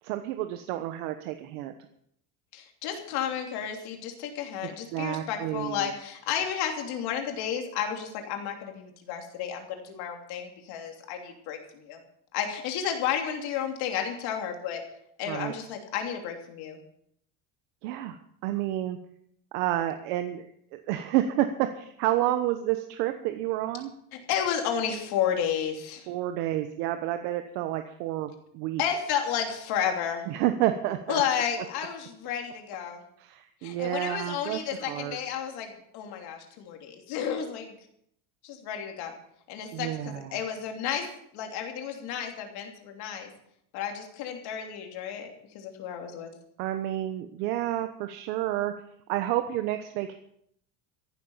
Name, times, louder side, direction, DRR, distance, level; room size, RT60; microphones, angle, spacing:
voice 1, 0.0-1.7 4.6-5.9 15.3-15.5 17.8-19.0 19.5-20.5 20.7-23.9 26.1-28.8 30.3-31.2 33.2-35.2 39.7-40.4 46.6-48.7 49.1-50.1, right 13 dB, 70° right, 7 dB, 1.3 m, -30 dB
voice 2, 2.5-12.0 12.3-14.8 15.2-16.8 24.1-26.1 28.8-30.3 31.1-33.0 33.6-37.8 38.4-39.1 39.5-43.3 43.7-46.3, left 8 dB, 55° left, 3 dB, 3.2 m, -32 dB
14.0 x 12.0 x 5.8 m, 0.70 s
cardioid pair, 165°, 46 cm